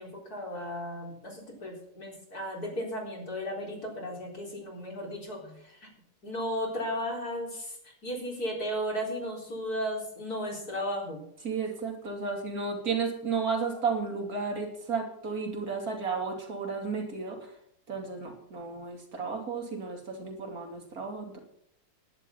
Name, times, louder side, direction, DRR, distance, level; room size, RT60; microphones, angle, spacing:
voice 1, 0.0-5.9 6.2-11.2, equal, 50° left, 0 dB, 4.6 m, -35 dB
voice 2, 11.4-17.5 17.9-21.4, right 5 dB, 45° right, 1 dB, 3.2 m, -33 dB
11.0 x 10.5 x 7.1 m, 0.69 s
omnidirectional pair, 2.1 m